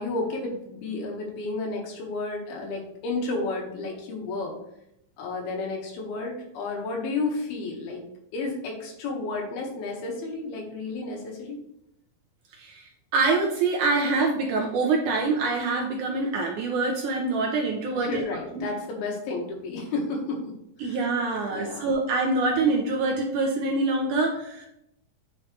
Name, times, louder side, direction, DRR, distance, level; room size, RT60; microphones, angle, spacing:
voice 1, 0.0-4.5 5.2-8.0 8.3-11.6 18.0-20.4 20.8-21.0 21.5-21.9, left 3 dB, 90° left, 0 dB, 3.4 m, -32 dB
voice 2, 12.6-18.2 18.5-18.6 20.8-24.7, right 3 dB, 70° right, 1 dB, 1.9 m, -25 dB
8.6 x 5.6 x 3.2 m, 0.79 s
omnidirectional pair, 4.3 m